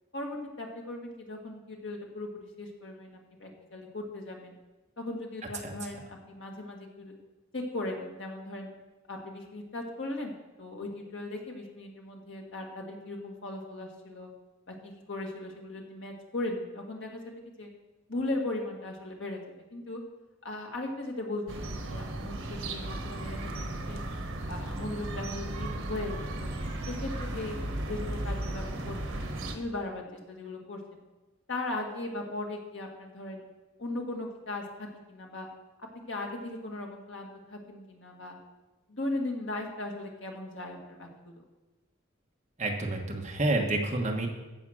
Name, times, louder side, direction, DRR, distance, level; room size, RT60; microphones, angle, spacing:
voice 1, 0.1-2.3 2.6-4.5 5.0-7.1 7.5-8.7 9.1-14.3 14.7-17.7 18.1-19.4 19.7-20.0 20.4-24.0 24.5-26.5 26.8-27.6 27.9-31.0 31.5-33.5 33.8-35.5 35.9-38.4 38.9-41.4, left 2 dB, 65° left, 0 dB, 1.9 m, -38 dB
sound 1, 21.5-29.6, right 1 dB, 85° right, 1.2 m, -35 dB
voice 2, 42.6-44.3, right 2 dB, 35° right, 1 dB, 1.3 m, -29 dB
15.5 x 5.1 x 6.3 m, 1.1 s
head